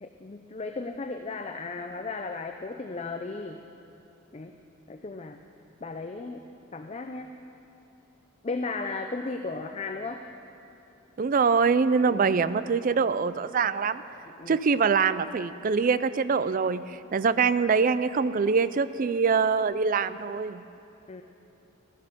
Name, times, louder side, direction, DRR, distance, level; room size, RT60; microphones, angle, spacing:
voice 1, 0.0-3.6 4.3-4.5 4.9-5.4 5.8-6.4 6.7-7.3 8.4-10.2 12.1-12.3 14.3-14.6 21.1-21.2, left 3 dB, 30° left, 6 dB, 0.5 m, -35 dB
voice 2, 11.2-14.0 14.5-20.6, right 5 dB, 40° right, 14 dB, 0.4 m, -24 dB
16.0 x 12.0 x 6.7 m, 2.9 s
head